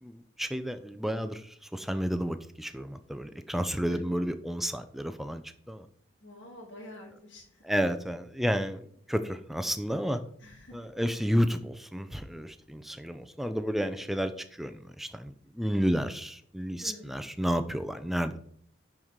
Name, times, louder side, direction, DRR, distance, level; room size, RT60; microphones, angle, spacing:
voice 1, 0.0-5.9 7.6-8.8 9.1-10.2 10.7-14.3 14.6-18.4, equal, ahead, 9 dB, 0.5 m, -31 dB
voice 2, 6.2-7.6 10.4-10.9 16.8-17.2, left 1 dB, 80° left, -5 dB, 2.4 m, -47 dB
9.6 x 4.7 x 3.7 m, 0.62 s
head